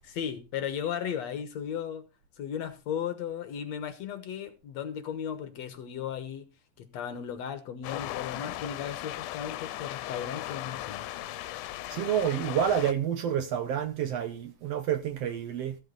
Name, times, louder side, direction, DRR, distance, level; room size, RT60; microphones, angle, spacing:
voice 1, 0.0-2.0 2.4-6.5 6.8-11.1, left 8 dB, 65° left, 2.3 m, -36 dB
sound 1, 7.8-12.9, left 15 dB, 85° left, 2.2 m, -37 dB
voice 2, 11.9-15.8, right 9 dB, 70° right, 1.7 m, -29 dB
14.5 x 7.7 x 3.9 m
omnidirectional pair, 3.5 m